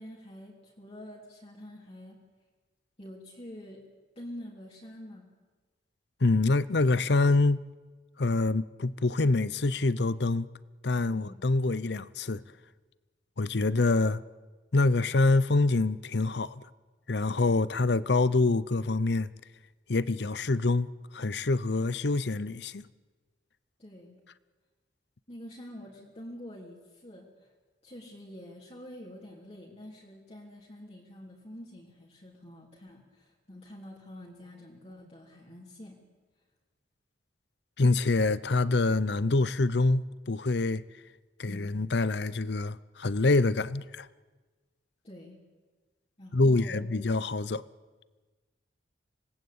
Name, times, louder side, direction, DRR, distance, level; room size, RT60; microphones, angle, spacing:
voice 1, 0.0-2.2 3.0-3.8 4.1-5.3 11.1-11.4 23.8-24.2 25.3-27.5 27.8-36.0 41.5-41.8 45.0-45.4 46.2-46.9, left 1 dB, 35° left, 3.3 m, -46 dB
voice 2, 6.2-7.7 8.2-10.5 10.8-12.4 13.4-14.2 14.7-16.6 17.1-19.3 19.9-22.9 37.8-40.8 41.4-44.1 46.3-47.6, left 3 dB, 65° left, 0.7 m, -26 dB
26.0 x 19.0 x 8.7 m
head